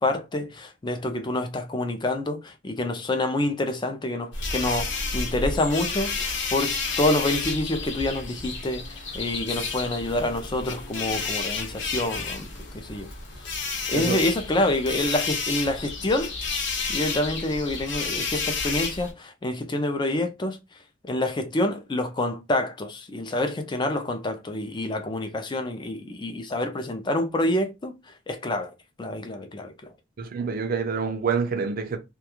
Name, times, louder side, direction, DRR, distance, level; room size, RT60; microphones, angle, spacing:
voice 1, 0.0-12.5 12.7-13.1 13.4-13.5 13.9-16.3 16.9-20.6 21.1-28.7 29.0-29.9, left 1 dB, 20° left, 0.4 m, -27 dB
sound 1, 4.3-19.1, left 4 dB, 60° left, 0.8 m, -31 dB
voice 2, 30.2-32.0, right 5 dB, 45° right, 0.4 m, -27 dB
2.3 x 2.2 x 2.8 m
head